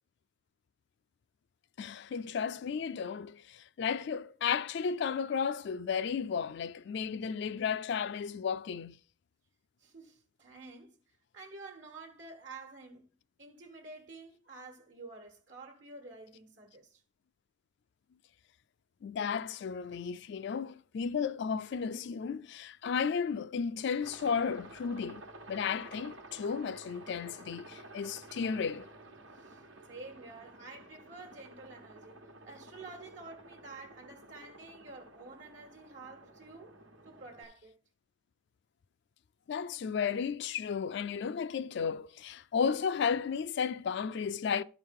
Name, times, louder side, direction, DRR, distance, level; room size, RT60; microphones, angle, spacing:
voice 1, 1.8-9.0 19.0-28.9 39.5-44.6, left 6 dB, 60° left, 0.3 m, -34 dB
voice 2, 9.8-13.1 13.4-17.0 29.3-29.6 29.9-32.2 32.4-36.8 37.0-37.7, right 3 dB, 65° right, 1.3 m, -50 dB
Aircraft, 24.0-37.4, right 2 dB, 85° right, 1.3 m, -52 dB
12.5 x 4.7 x 3.6 m
head